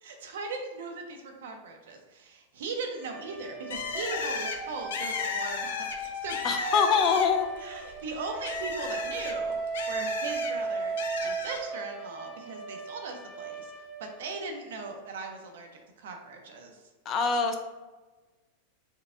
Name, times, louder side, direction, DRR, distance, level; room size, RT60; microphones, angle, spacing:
voice 1, 0.0-6.5 7.6-11.0 11.2-15.7 16.0-16.8, right 3 dB, 70° right, 3 dB, 0.8 m, -39 dB
sound 1, 2.9-14.8, right 3 dB, 5° left, 0.8 m, -36 dB
Bird, 3.7-7.5 7.9-10.5 11.0-11.6, left 5 dB, 85° left, 0.6 m, -35 dB
voice 2, 6.4-7.5 17.1-17.6, left 6 dB, 25° left, 5 dB, 0.3 m, -24 dB
4.6 x 2.3 x 3.7 m, 1.2 s
supercardioid pair, 175°, 0 cm